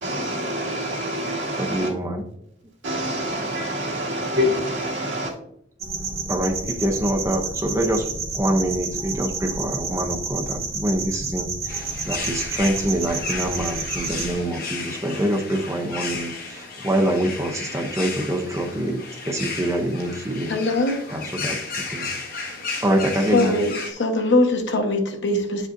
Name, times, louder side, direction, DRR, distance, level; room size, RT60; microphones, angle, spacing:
voice 1, 0.0-1.9 2.8-5.3, equal, 75° right, 2.1 m, -26 dB
voice 2, 1.6-2.3 6.3-20.6 21.1-22.2 22.8-23.5, right 1 dB, 15° right, 0.6 m, -25 dB
sound 1, 5.8-14.3, right 4 dB, 35° right, 1.4 m, -30 dB
sound 2, 11.7-23.9, left 4 dB, 50° left, 1.2 m, -34 dB
voice 3, 20.5-21.0 23.3-25.7, left 2 dB, 75° left, 1.1 m, -21 dB
9.5 x 5.0 x 2.6 m
head